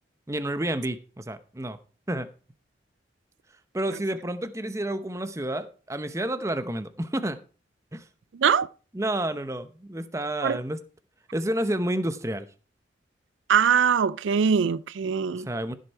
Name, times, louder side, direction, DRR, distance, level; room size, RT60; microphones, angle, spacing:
voice 1, 0.3-1.8 2.1-2.3 3.7-7.4 7.9-8.0 8.9-10.8 11.3-12.5 15.5-15.8, right 1 dB, 15° right, 0.8 m, -30 dB
voice 2, 13.5-15.5, right 7 dB, 85° right, 0.4 m, -22 dB
15.0 x 6.5 x 4.6 m
head